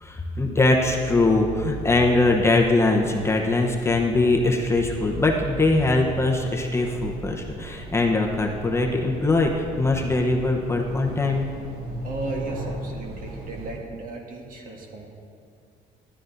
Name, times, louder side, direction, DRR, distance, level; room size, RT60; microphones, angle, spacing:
voice 1, 0.0-11.5, left 2 dB, 15° left, 0 dB, 0.9 m, -22 dB
sound 1, 0.8-2.8 4.6-6.6 8.5-8.6, right 4 dB, 30° right, 0.7 m, -36 dB
sound 2, 1.2-13.7, right 3 dB, 70° right, 2.6 m, -39 dB
voice 2, 12.0-15.1, right 1 dB, 55° right, 0 dB, 1.8 m, -35 dB
12.5 x 12.0 x 2.6 m, 2.3 s
cardioid pair, 110°, 17 cm